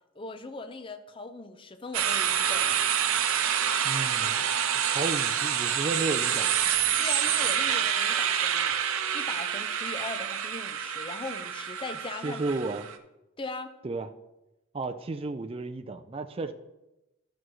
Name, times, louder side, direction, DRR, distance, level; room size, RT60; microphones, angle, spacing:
voice 1, 0.1-2.8 7.0-8.8 9.1-12.4 13.4-13.7, left 3 dB, 25° left, 8 dB, 0.5 m, -39 dB
sound 1, 1.9-12.9, right 9 dB, 85° right, 0.7 m, -27 dB
voice 2, 3.8-4.5 4.9-6.5 12.2-12.9 13.8-14.1 14.7-16.5, right 3 dB, 25° right, 7 dB, 0.4 m, -33 dB
12.0 x 6.2 x 3.1 m, 0.96 s
head